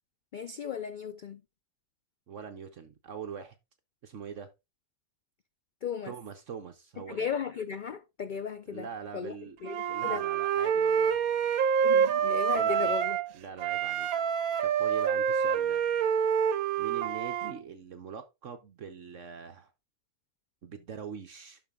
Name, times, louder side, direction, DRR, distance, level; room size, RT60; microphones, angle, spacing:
voice 1, 0.3-1.4 5.8-6.1 7.1-8.9 9.1-9.4 9.6-9.8 10.0-10.2 11.8-13.2, left 7 dB, 65° left, 0.4 m, -35 dB
voice 2, 2.3-3.6 4.0-4.5 6.1-7.3 8.7-9.6 9.9-11.2 12.5-12.9 13.3-14.1 14.6-15.8 16.8-19.7 20.6-21.6, right 7 dB, 60° right, 1.2 m, -43 dB
Wind instrument woodwind instrument, 9.6-13.3 13.6-17.5, right 7 dB, 80° right, 1.2 m, -27 dB
12.0 x 4.2 x 3.6 m
omnidirectional pair, 1.5 m